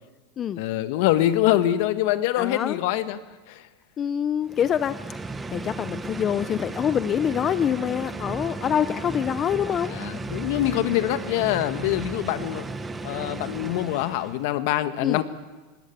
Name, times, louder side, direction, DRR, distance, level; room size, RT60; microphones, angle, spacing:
voice 1, 0.6-3.2 3.5-3.6 9.9-12.7 13.0-15.2, left 13 dB, 65° left, 11 dB, 1.4 m, -24 dB
voice 2, 2.4-2.8 4.0-4.9 5.5-10.0 13.6-13.7 15.0-15.2, left 9 dB, 30° left, 13 dB, 0.6 m, -25 dB
sound 1, 4.4-14.5, right 3 dB, 15° right, 1.2 m, -35 dB
20.0 x 18.0 x 8.7 m, 1.2 s
supercardioid pair, 130°, 0 cm